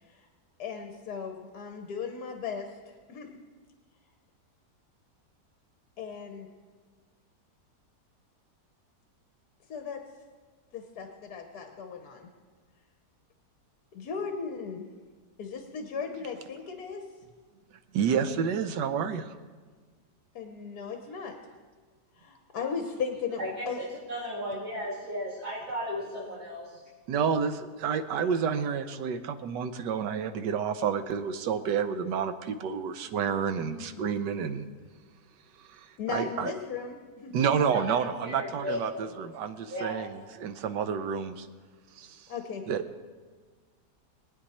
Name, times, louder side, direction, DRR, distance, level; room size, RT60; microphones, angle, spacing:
voice 1, 0.6-3.4 6.0-6.5 9.7-10.0 10.7-12.3 13.9-14.9 15.4-17.1 20.3-21.3 22.2-23.8 33.8-34.1 36.0-37.3 42.3-42.6, left 6 dB, 65° left, 4 dB, 1.5 m, -37 dB
voice 2, 17.9-19.3 27.1-34.6 35.7-36.5 37.3-41.5 42.0-42.3 42.7-42.8, right 7 dB, 90° right, 10 dB, 1.4 m, -29 dB
voice 3, 23.8-26.8 37.7-39.2 39.7-40.0, equal, 65° right, -9 dB, 3.5 m, -35 dB
22.0 x 9.0 x 4.3 m, 1.5 s
omnidirectional pair, 1.8 m